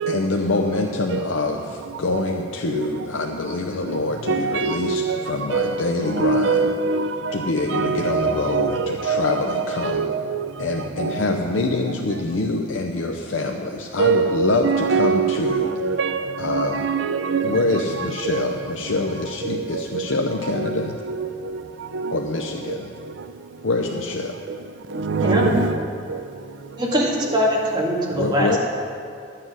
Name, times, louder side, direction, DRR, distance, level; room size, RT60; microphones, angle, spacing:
voice 1, 0.1-6.7 7.3-10.1 10.6-15.7 16.4-16.8 17.4-21.0 22.1-22.9 23.6-24.4 28.1-28.6, left 3 dB, 80° left, 0.6 m, -25 dB
voice 2, 4.3-5.2 5.5-5.8 6.1-7.1 7.7-10.4 11.0-11.1 14.0-17.8 18.2-18.4 20.6-21.3 21.9-22.2 25.0-25.7, right 5 dB, 65° right, 0.5 m, -23 dB
voice 3, 25.2-25.5 26.8-28.5, equal, 25° right, 1.8 m, -21 dB
11.5 x 7.7 x 6.0 m
head